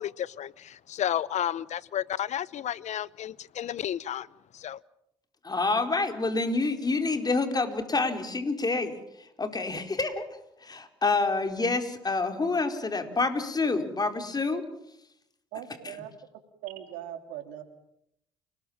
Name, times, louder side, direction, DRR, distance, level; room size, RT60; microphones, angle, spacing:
voice 1, 0.0-4.3 4.5-4.8, left 10 dB, 60° left, 0.9 m, -32 dB
voice 2, 5.4-10.3 10.6-14.6 15.8-15.9, left 3 dB, 30° left, 4.3 m, -28 dB
voice 3, 15.5-16.1 16.6-17.6, right 11 dB, 85° right, 3.2 m, -39 dB
29.5 x 20.0 x 7.3 m
hypercardioid pair, 55°, 13 cm